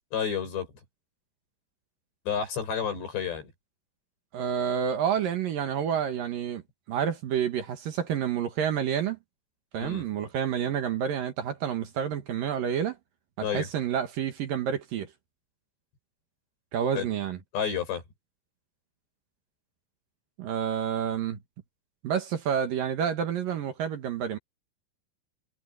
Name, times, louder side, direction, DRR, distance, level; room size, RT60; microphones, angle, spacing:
voice 1, 0.1-0.7 2.3-3.5 9.8-10.0 13.4-13.7 17.0-17.1 17.5-18.0, left 7 dB, 90° left, 9.5 m, -30 dB
voice 2, 4.3-6.6 6.9-9.2 9.7-13.0 13.4-15.1 16.7-17.4 20.4-21.4 22.0-24.4, right 8 dB, 60° right, 2.9 m, -29 dB
omnidirectional pair, 4.8 m